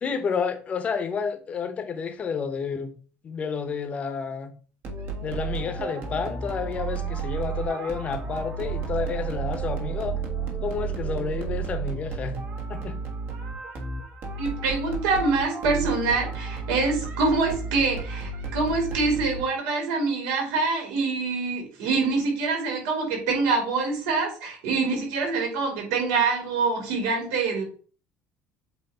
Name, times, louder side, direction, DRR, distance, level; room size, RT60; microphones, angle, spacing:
voice 1, 0.0-2.9 3.2-4.5 5.2-10.2 10.6-12.4 12.7-13.0, left 6 dB, 30° left, 1.0 m, -30 dB
sound 1, 4.8-19.8, right 5 dB, 50° right, 1.5 m, -32 dB
voice 2, 14.4-27.6, right 4 dB, 80° right, 3.2 m, -25 dB
8.0 x 3.1 x 4.3 m
cardioid pair, 145°, 5 cm